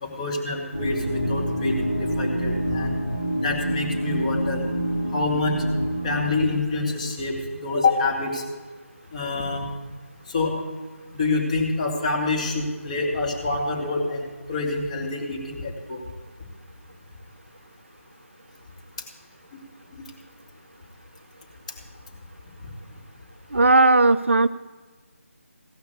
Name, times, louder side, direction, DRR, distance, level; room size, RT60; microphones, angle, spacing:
voice 1, 0.0-3.0 3.4-4.6 5.1-5.6 6.0-8.4 9.1-9.7 10.3-10.6 11.1-16.0 22.6-22.7, left 3 dB, 30° left, 0 dB, 2.6 m, -26 dB
sound 1, 0.7-6.5, right 1 dB, 60° left, 5.3 m, -27 dB
voice 2, 23.5-24.5, right 2 dB, 55° right, 14 dB, 0.5 m, -17 dB
16.5 x 5.8 x 8.3 m, 1.4 s
figure-of-eight pair, 160°, 8 cm